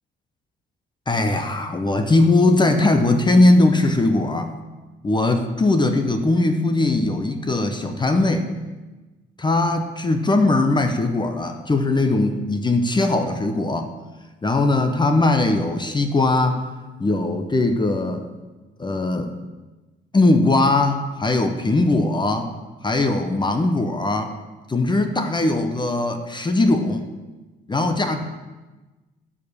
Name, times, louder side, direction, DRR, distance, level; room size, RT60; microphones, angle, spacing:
voice 1, 1.1-4.5 5.0-8.5 9.4-13.9 14.4-16.7 17.0-18.2 18.8-19.3 20.1-22.5 22.8-24.3 24.7-27.1 27.7-28.2, left 2 dB, 25° left, 6 dB, 0.9 m, -20 dB
10.0 x 5.1 x 6.5 m, 1.2 s
cardioid pair, 90°, 20 cm